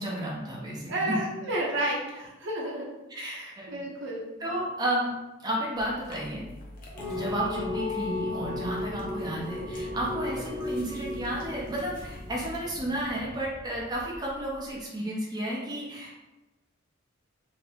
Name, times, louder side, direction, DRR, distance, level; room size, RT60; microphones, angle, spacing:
voice 1, 0.0-1.2 3.1-3.8 4.4-5.1 5.4-6.4 7.1-16.2, right 1 dB, 20° right, -5 dB, 0.6 m, -32 dB
voice 2, 0.9-2.9 3.1-4.3, right 1 dB, 60° right, -3 dB, 0.7 m, -31 dB
sound 1, 5.7-12.6, left 1 dB, 40° left, 0.7 m, -46 dB
sound 2, 6.9-14.5, left 2 dB, 10° left, 0.9 m, -35 dB
2.7 x 2.7 x 3.4 m, 1.1 s
head